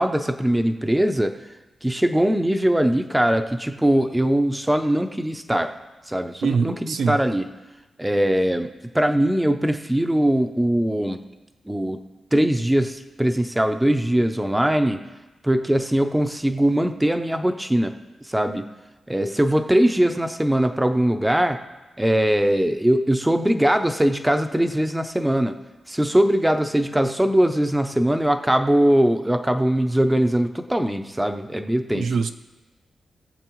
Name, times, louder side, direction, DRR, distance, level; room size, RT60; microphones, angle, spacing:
voice 1, 0.0-1.3 1.8-5.7 6.1-7.5 8.0-11.2 11.7-12.0 12.3-15.0 15.4-17.9 18.2-18.6 19.1-21.6 22.0-25.5 25.9-32.1, right 1 dB, 5° right, 7 dB, 0.5 m, -21 dB
voice 2, 6.4-7.2 31.9-32.3, right 5 dB, 70° right, 9 dB, 0.5 m, -23 dB
20.5 x 7.6 x 3.1 m, 1.1 s
wide cardioid pair, 180°, 0 cm